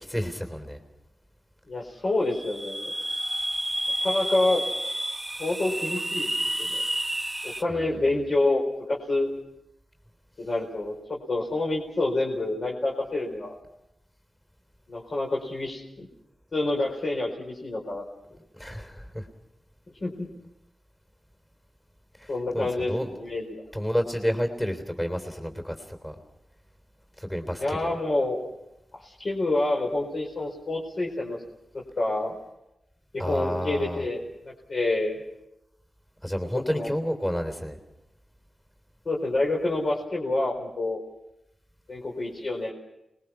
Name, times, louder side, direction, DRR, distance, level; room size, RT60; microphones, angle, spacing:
voice 1, 0.1-0.8 7.7-8.0 18.5-19.3 22.2-23.1 23.7-26.1 27.2-27.9 33.2-34.0 36.2-37.8, equal, 10° left, 6 dB, 3.5 m, -30 dB
voice 2, 1.7-2.9 4.0-4.6 5.4-6.3 6.6-6.8 7.4-9.3 10.4-13.5 14.9-16.1 16.5-18.0 20.0-20.3 22.3-23.6 27.6-28.4 28.9-31.4 31.7-32.4 33.1-35.2 36.5-36.9 39.0-41.0 41.9-42.7, left 2 dB, 50° left, -2 dB, 4.5 m, -28 dB
sound 1, 2.3-7.6, right 1 dB, 10° right, 1.1 m, -30 dB
30.0 x 21.0 x 5.8 m, 0.90 s
wide cardioid pair, 110°, 0 cm